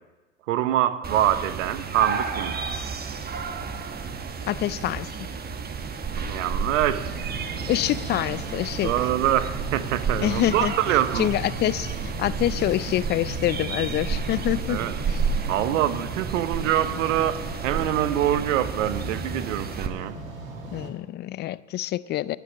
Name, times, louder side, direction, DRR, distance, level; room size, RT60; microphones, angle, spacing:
voice 1, 0.5-2.6 6.2-7.1 8.8-11.3 14.7-15.0 15.5-20.1, right 12 dB, 70° right, 14 dB, 1.0 m, -25 dB
sound 1, 1.0-19.9, right 5 dB, 25° right, 1.2 m, -31 dB
voice 2, 4.5-5.1 7.7-8.9 10.2-10.7 11.2-14.8 15.1-15.2 20.7-22.4, left 14 dB, 30° left, 19 dB, 0.4 m, -26 dB
sound 2, 7.0-20.9, right 2 dB, 85° right, 2.2 m, -37 dB
12.5 x 10.5 x 7.3 m, 1.2 s
hypercardioid pair, 90°, 39 cm